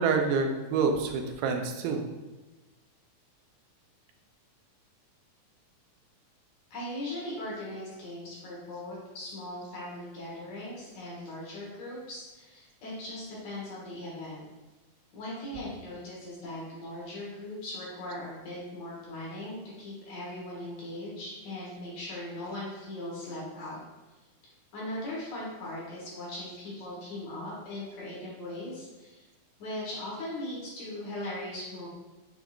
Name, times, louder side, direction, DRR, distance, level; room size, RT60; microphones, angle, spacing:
voice 1, 0.0-2.0, right 5 dB, 85° right, 4 dB, 2.1 m, -27 dB
voice 2, 6.7-14.4 15.1-23.8 24.7-29.2 29.6-31.9, left 1 dB, 65° left, -6 dB, 2.3 m, -39 dB
6.0 x 3.5 x 2.4 m, 1.2 s
omnidirectional pair, 3.7 m